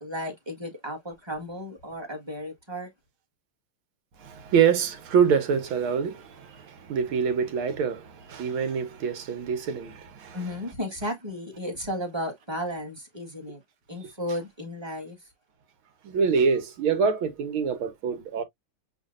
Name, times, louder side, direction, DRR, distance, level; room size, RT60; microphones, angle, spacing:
voice 1, 0.0-2.9 10.3-13.6 13.9-15.2, equal, 15° right, 1.3 m, -34 dB
voice 2, 4.2-10.7 16.0-18.4, right 6 dB, 75° right, 2.0 m, -26 dB
7.8 x 2.7 x 2.5 m
omnidirectional pair, 2.3 m